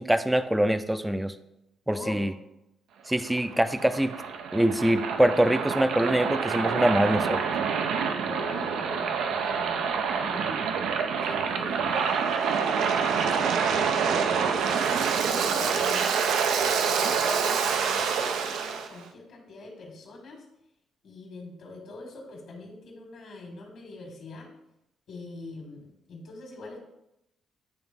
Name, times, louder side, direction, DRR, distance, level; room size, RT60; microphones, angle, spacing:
voice 1, 0.0-1.3 1.9-2.3 3.1-4.1 4.5-7.4, right 1 dB, 5° right, 11 dB, 0.4 m, -24 dB
voice 2, 1.9-2.2 8.2-10.6 11.2-16.1 16.7-20.4 21.0-24.5 25.1-26.8, left 2 dB, 70° left, 0 dB, 1.4 m, -43 dB
Waves surf, 3.1-18.9, right 6 dB, 80° right, 0.5 m, -27 dB
9.0 x 3.0 x 3.5 m, 0.84 s
cardioid pair, 90°, 0 cm